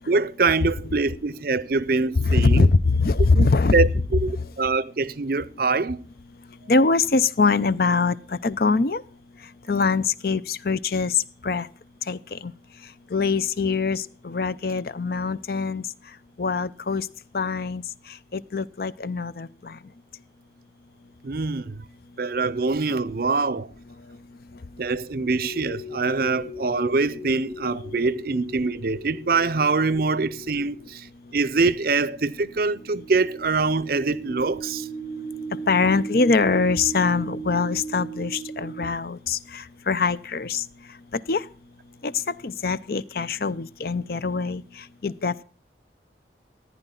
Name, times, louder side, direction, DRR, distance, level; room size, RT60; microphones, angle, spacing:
voice 1, 0.1-2.7 3.3-6.0 21.2-21.8 22.2-23.7 24.8-31.1 31.3-34.9, right 4 dB, 50° right, 0.6 m, -24 dB
voice 2, 2.3-3.8 6.7-8.1 8.4-9.0 9.7-11.1 11.4-11.7 12.1-12.5 13.1-15.8 16.4-17.1 17.3-17.8 18.3-19.7 35.7-40.6 41.3-41.4 42.0-42.1 42.4-44.6 45.0-45.4, left 4 dB, 55° left, 0.6 m, -23 dB
sound 1, 25.4-30.9 32.4-38.9, right 2 dB, 5° left, 0.9 m, -37 dB
15.0 x 10.0 x 3.9 m
head